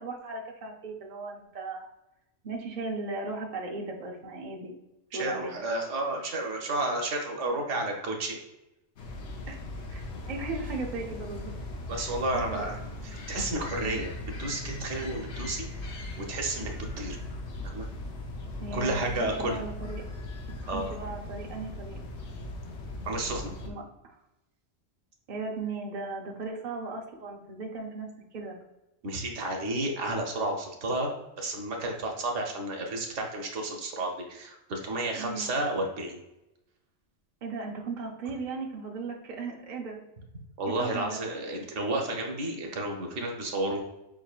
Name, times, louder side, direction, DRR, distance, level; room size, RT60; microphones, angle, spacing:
voice 1, 0.0-1.8 2.4-4.7 5.1-5.6 9.5-9.6 9.9-11.6 11.9-12.6 13.8-14.1 18.6-20.0 20.5-22.0 23.6-24.1 25.3-28.6 35.1-35.5 37.4-40.0 40.7-41.2, right 3 dB, 45° right, 0 dB, 0.8 m, -37 dB
voice 2, 5.1-8.4 11.9-12.8 13.0-15.6 16.2-16.7 17.0-17.2 17.6-17.9 18.7-19.6 20.7-21.0 23.0-23.5 29.0-36.2 40.6-43.8, right 2 dB, 85° right, 1 dB, 1.2 m, -31 dB
sound 1, 9.0-23.7, left 2 dB, 75° left, 1.0 m, -39 dB
5.4 x 3.6 x 2.4 m, 0.93 s
omnidirectional pair, 1.2 m